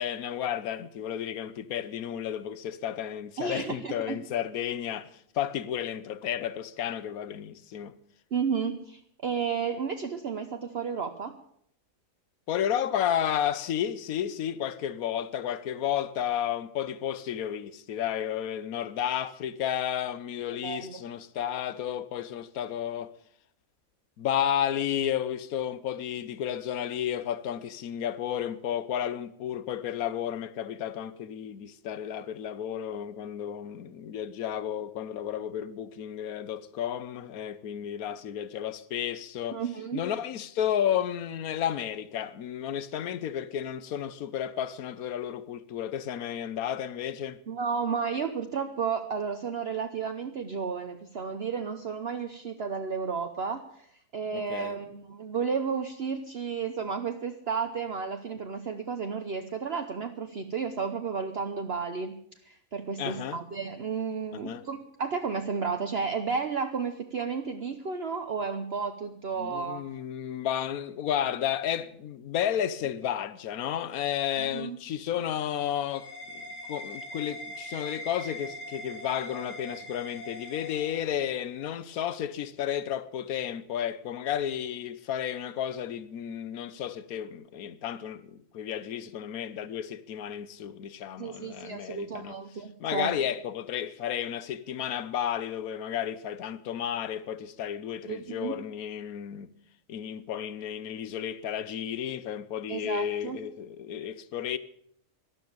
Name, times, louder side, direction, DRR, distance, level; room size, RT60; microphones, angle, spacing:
voice 1, 0.0-7.9 12.5-23.1 24.2-39.6 39.9-47.4 54.3-54.8 63.0-63.4 64.3-64.7 69.4-76.4 76.7-92.4 92.8-99.5 99.9-104.6, left 10 dB, 80° left, 1.3 m, -32 dB
voice 2, 3.4-4.2 8.3-11.3 20.6-21.0 39.5-40.0 47.5-69.8 74.4-74.8 91.2-93.1 98.1-98.6 102.7-103.4, right 5 dB, 50° right, 1.1 m, -32 dB
sound 1, 75.4-81.6, equal, 50° left, 2.6 m, -42 dB
12.5 x 12.0 x 8.6 m
omnidirectional pair, 1.5 m